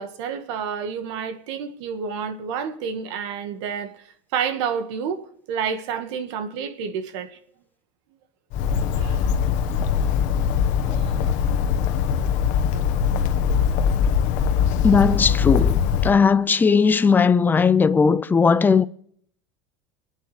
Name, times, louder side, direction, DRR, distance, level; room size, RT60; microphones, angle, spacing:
voice 1, 0.0-4.0 4.3-7.4 8.9-9.2 10.8-11.2 12.7-12.8, right 7 dB, 80° right, 1.7 m, -30 dB
Bird, 8.5-16.1, left 7 dB, 60° left, 1.2 m, -21 dB
voice 2, 14.8-18.9, left 5 dB, 15° left, 0.5 m, -18 dB
26.0 x 9.3 x 3.3 m
supercardioid pair, 130°, 15 cm